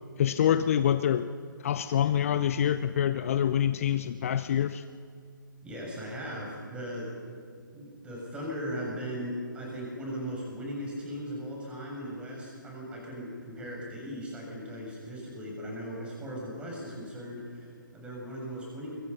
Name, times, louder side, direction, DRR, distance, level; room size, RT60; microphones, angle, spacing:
voice 1, 0.2-1.3 1.6-4.8, left 9 dB, 40° left, 13 dB, 0.7 m, -26 dB
voice 2, 5.6-7.1 7.7-18.9, equal, 10° right, -3 dB, 8.0 m, -38 dB
28.5 x 25.0 x 5.8 m, 2.2 s
figure-of-eight pair, 140°, 11 cm